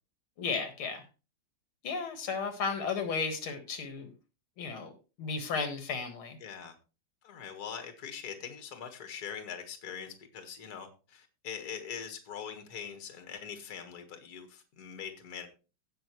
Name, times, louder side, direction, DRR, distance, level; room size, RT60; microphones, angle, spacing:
voice 1, 0.4-1.0 1.8-4.1 4.6-4.9 5.2-6.4, left 5 dB, 85° left, 7 dB, 2.5 m, -34 dB
voice 2, 6.4-6.8 7.2-15.5, left 7 dB, 50° left, 6 dB, 2.0 m, -42 dB
17.0 x 6.5 x 3.1 m, 0.32 s
omnidirectional pair, 2.2 m